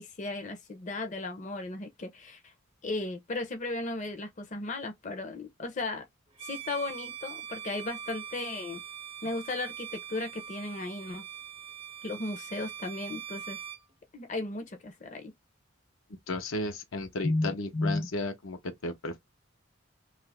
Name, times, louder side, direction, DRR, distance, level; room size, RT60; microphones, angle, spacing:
voice 1, 0.0-2.5 2.8-6.0 6.4-8.8 9.2-11.2 12.0-13.6 14.1-15.3 17.2-18.1, left 2 dB, 40° left, 0.6 m, -35 dB
Bowed string instrument, 6.3-13.8, right 8 dB, 30° right, 0.5 m, -42 dB
voice 2, 16.3-19.2, left 2 dB, 80° left, 0.7 m, -34 dB
2.8 x 2.4 x 3.3 m
head